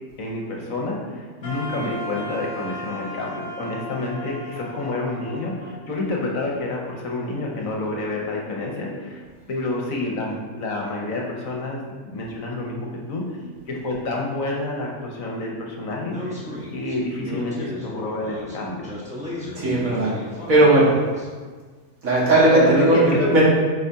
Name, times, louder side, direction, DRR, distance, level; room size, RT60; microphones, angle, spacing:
voice 1, 0.2-9.2 9.5-13.4 13.7-16.4 16.7-18.9 22.5-23.3, left 2 dB, 65° left, -1 dB, 1.3 m, -28 dB
Wind instrument woodwind instrument, 1.4-6.5, left 1 dB, 45° left, 1.6 m, -36 dB
Speech, 16.1-21.3, left 1 dB, 5° right, 1.4 m, -35 dB
voice 2, 19.6-20.1 20.5-21.0 22.0-23.4, right 2 dB, 65° right, -7 dB, 2.3 m, -17 dB
8.0 x 5.0 x 2.8 m, 1.4 s
omnidirectional pair, 1.6 m